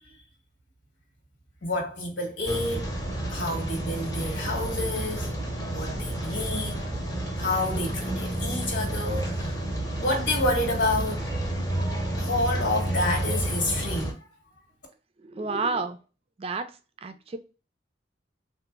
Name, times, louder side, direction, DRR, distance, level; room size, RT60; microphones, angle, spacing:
voice 1, 1.6-2.9 3.3-5.3 5.7-6.8 7.3-9.6 10.0-11.2 12.2-14.3, left 2 dB, 75° left, 1.4 m, -29 dB
Rain, 2.5-14.1, right 1 dB, 20° left, 0.9 m, -30 dB
voice 2, 15.2-16.0 16.4-16.7 17.0-17.4, right 4 dB, 30° right, 0.4 m, -30 dB
4.0 x 2.5 x 2.3 m
head